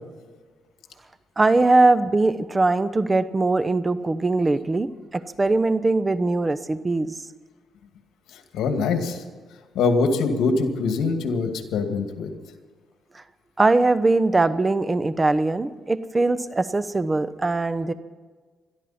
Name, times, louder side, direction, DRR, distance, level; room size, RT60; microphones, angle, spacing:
voice 1, 1.4-7.1 13.6-17.9, right 2 dB, 25° right, 13 dB, 0.9 m, -21 dB
voice 2, 8.3-9.2 9.7-12.3, left 4 dB, 80° left, 5 dB, 2.3 m, -23 dB
21.5 x 13.5 x 4.4 m, 1.4 s
cardioid pair, 90°, 0 cm